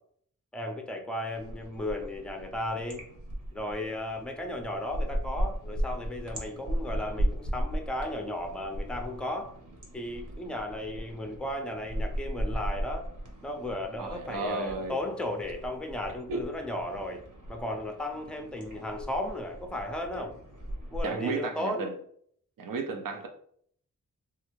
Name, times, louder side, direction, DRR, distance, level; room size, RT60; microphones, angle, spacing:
voice 1, 0.5-3.1 3.5-9.5 9.9-13.1 13.4-20.3 20.9-21.9, left 1 dB, 5° left, 0.4 m, -35 dB
sound 1, 1.3-21.0, equal, 65° right, 0.9 m, -37 dB
voice 2, 14.0-15.0 16.3-16.4 21.0-21.9 22.6-23.3, right 3 dB, 80° right, 0.5 m, -33 dB
3.2 x 2.4 x 3.0 m
wide cardioid pair, 85°, 33 cm